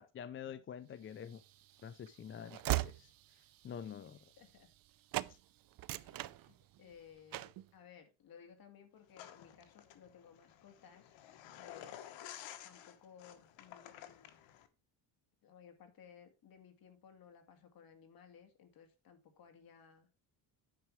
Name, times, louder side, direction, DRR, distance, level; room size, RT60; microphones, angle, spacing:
voice 1, 0.0-1.4 1.8-3.1 3.6-4.2 5.3-5.4, left 8 dB, 30° left, 0.4 m, -47 dB
Train / Slam, 1.2-4.9 5.1-5.4 5.7-6.9 7.3-7.7, right 16 dB, 50° right, 0.6 m, -40 dB
voice 2, 4.4-4.7 5.9-11.2 11.6-12.0 12.6-14.3 15.4-20.1, left 7 dB, 50° left, 2.3 m, -59 dB
sound 1, 9.1-14.7, left 11 dB, 80° left, 1.4 m, -53 dB
9.6 x 5.8 x 4.6 m
cardioid pair, 135°, 45 cm